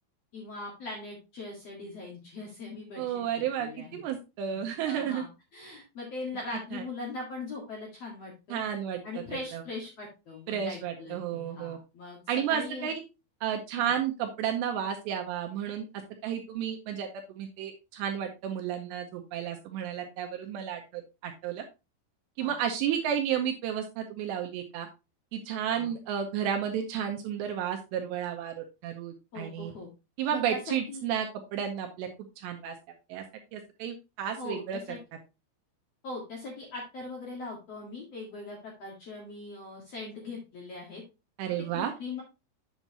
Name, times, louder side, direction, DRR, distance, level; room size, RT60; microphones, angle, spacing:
voice 1, 0.3-4.0 4.4-8.6 9.0-12.2 12.5-12.9 13.8-14.0 22.4-22.5 25.7-25.9 29.3-29.9 30.3-31.1 34.4-35.0 36.0-41.0 41.7-42.2, left 3 dB, 70° left, -2 dB, 1.5 m, -41 dB
voice 2, 3.0-5.2 6.7-6.8 8.5-9.0 9.5-9.6 10.5-11.8 12.3-12.9 13.4-21.6 22.4-24.9 25.3-29.7 30.2-32.1 32.4-32.8 33.1-33.2 33.5-34.8 41.4-41.9, right 9 dB, 80° right, 4 dB, 2.6 m, -32 dB
8.2 x 7.1 x 2.8 m, 0.27 s
omnidirectional pair, 6.0 m